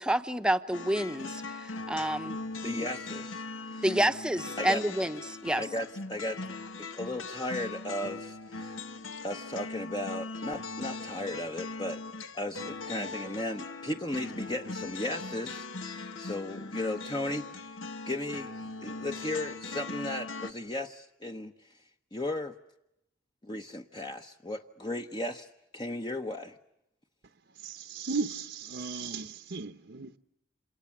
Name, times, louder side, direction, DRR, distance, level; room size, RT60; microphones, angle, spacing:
voice 1, 0.0-2.4 2.8-2.9 3.8-5.6, right 1 dB, 5° right, 0.9 m, -29 dB
sound 1, 0.7-20.5, left 3 dB, 80° left, 1.4 m, -40 dB
voice 2, 2.6-3.8 4.6-4.8 5.6-6.4 6.8-8.8 9.2-12.0 12.3-17.8 18.1-21.5 22.1-22.5 23.4-25.5 25.7-26.6, left 1 dB, 25° left, 0.9 m, -36 dB
voice 3, 27.5-30.2, right 4 dB, 60° right, 1.0 m, -36 dB
28.0 x 27.5 x 7.3 m
head